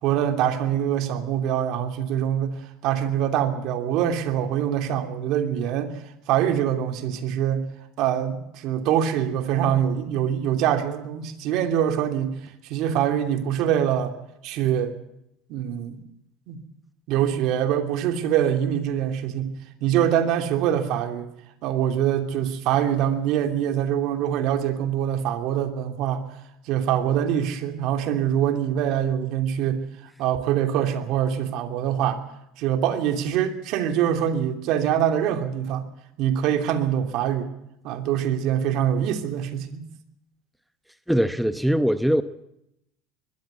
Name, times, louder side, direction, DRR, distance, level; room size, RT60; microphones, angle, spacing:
voice 1, 0.0-6.0 6.3-7.7 8.0-14.2 14.4-14.9 15.5-16.0 16.5-16.6 17.1-21.3 21.6-26.3 26.7-29.9 30.2-32.2 32.6-35.9 36.2-37.5 37.8-39.8, right 10 dB, 60° right, 7 dB, 2.9 m, -24 dB
voice 2, 41.1-42.2, equal, ahead, 11 dB, 0.9 m, -21 dB
21.5 x 13.0 x 9.5 m, 0.81 s
supercardioid pair, 115°, 0 cm